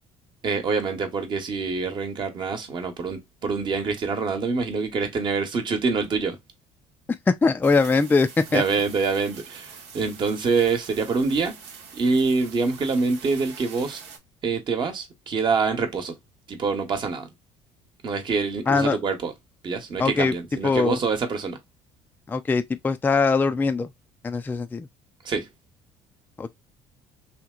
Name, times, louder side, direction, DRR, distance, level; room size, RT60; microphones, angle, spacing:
voice 1, 0.4-6.4 8.5-11.6 11.9-14.0 14.4-16.2 16.5-17.3 18.0-19.3 19.6-21.6 25.2-25.5, right 4 dB, 45° right, 1.0 m, -25 dB
voice 2, 7.3-8.6 18.7-19.0 20.0-20.3 20.6-21.0 22.3-23.9 24.2-24.9 26.4-26.5, left 4 dB, 15° left, 0.3 m, -21 dB
sound 1, 7.6-14.2, right 6 dB, 80° right, 0.9 m, -45 dB
2.9 x 2.8 x 2.3 m
supercardioid pair, 85°, 11 cm